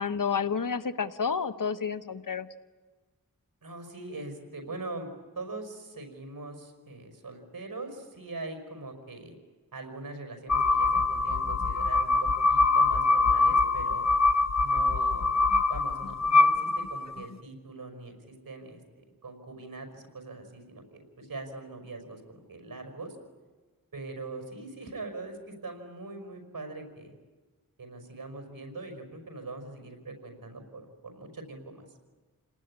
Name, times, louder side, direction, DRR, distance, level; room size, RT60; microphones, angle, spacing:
voice 1, 0.0-2.5, left 6 dB, 70° left, 10 dB, 1.2 m, -30 dB
voice 2, 3.6-5.1 5.4-9.4 9.7-14.0 14.6-15.3 15.7-23.2 23.9-27.1 27.8-31.9, right 2 dB, 80° right, 5 dB, 5.3 m, -42 dB
sound 1, 10.5-17.3, left 3 dB, 50° left, 0.9 m, -24 dB
29.5 x 19.0 x 9.8 m, 1.3 s
wide cardioid pair, 55°, 34 cm